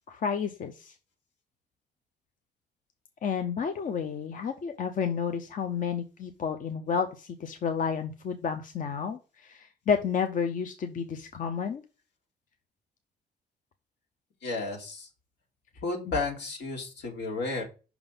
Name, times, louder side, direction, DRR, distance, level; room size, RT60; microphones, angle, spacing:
voice 1, 0.1-0.9 3.2-11.8 16.0-16.2, left 6 dB, 50° left, 8 dB, 0.6 m, -31 dB
voice 2, 14.4-15.1 15.8-17.6, left 3 dB, 80° left, 0 dB, 2.2 m, -32 dB
5.8 x 3.7 x 5.4 m, 0.33 s
cardioid pair, 120°, 18 cm